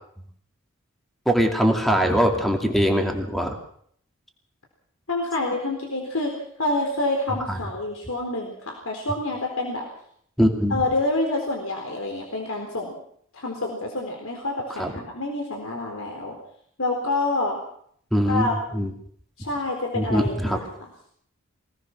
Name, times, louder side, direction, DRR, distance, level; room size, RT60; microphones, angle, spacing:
voice 1, 1.3-3.6 7.5-7.6 10.4-10.8 14.7-14.9 18.1-18.9 19.9-20.6, equal, ahead, 3 dB, 2.5 m, -22 dB
voice 2, 5.1-6.3 6.6-9.9 10.7-13.0 13.3-16.4 16.8-17.6 18.3-18.9 19.4-20.7, left 2 dB, 75° left, 1 dB, 4.1 m, -27 dB
24.5 x 18.5 x 6.1 m, 0.63 s
head